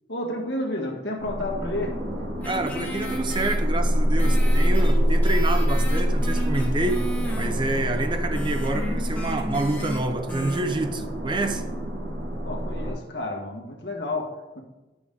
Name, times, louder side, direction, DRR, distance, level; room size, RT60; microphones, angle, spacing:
voice 1, 0.1-2.0 12.4-14.6, left 2 dB, 75° left, 0 dB, 1.6 m, -31 dB
sound 1, 1.2-12.9, equal, 75° right, 1.6 m, -25 dB
sound 2, 2.4-3.6 4.2-10.0 10.3-10.6, equal, 10° left, 1.6 m, -35 dB
voice 2, 2.4-7.0 7.3-11.6, right 2 dB, 25° right, 7 dB, 0.6 m, -28 dB
10.5 x 6.1 x 3.7 m, 1.1 s
head